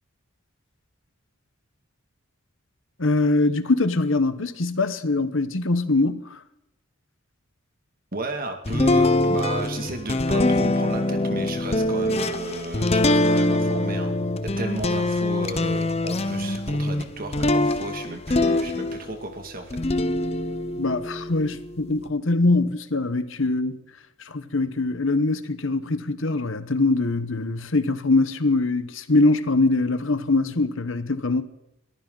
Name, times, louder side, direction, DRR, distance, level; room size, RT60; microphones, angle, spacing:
voice 1, 3.0-6.4 20.8-23.8 24.2-31.4, left 2 dB, 60° left, 1.1 m, -23 dB
voice 2, 8.1-14.1 14.4-19.7, right 2 dB, 40° right, 2.3 m, -34 dB
sound 1, 8.7-19.2 19.7-22.0, left 2 dB, 30° left, 0.8 m, -24 dB
22.5 x 14.5 x 4.0 m
head